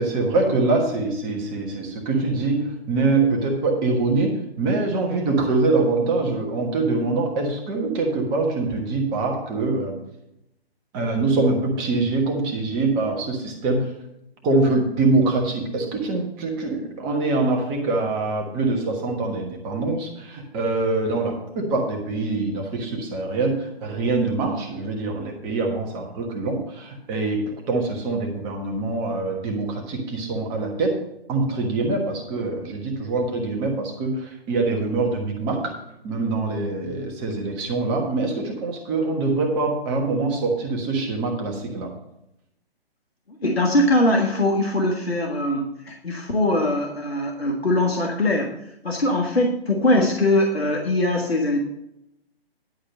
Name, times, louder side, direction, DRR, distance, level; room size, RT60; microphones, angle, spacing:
voice 1, 0.0-10.0 10.9-13.9 14.4-31.0 31.3-35.7 36.0-41.9, right 3 dB, 15° right, 2 dB, 1.3 m, -24 dB
voice 2, 43.4-51.6, left 1 dB, 75° left, 1 dB, 1.7 m, -21 dB
10.5 x 4.8 x 7.3 m, 0.81 s
figure-of-eight pair, 135°, 31 cm